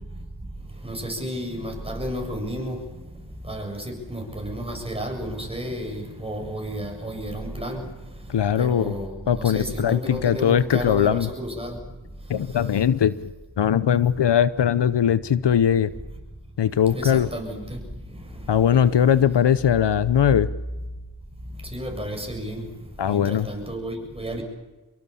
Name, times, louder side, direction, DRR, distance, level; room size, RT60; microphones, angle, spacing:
voice 1, 0.8-2.8 3.5-7.8 8.6-11.8 16.9-17.6 21.7-22.7 23.1-24.4, equal, 15° right, 2 dB, 7.4 m, -32 dB
voice 2, 8.3-9.0 9.3-11.3 12.3-13.3 13.6-15.9 16.6-17.3 18.5-20.5 23.0-23.5, left 9 dB, 80° left, 16 dB, 0.9 m, -20 dB
25.5 x 22.5 x 7.1 m, 1.2 s
cardioid pair, 55°, 41 cm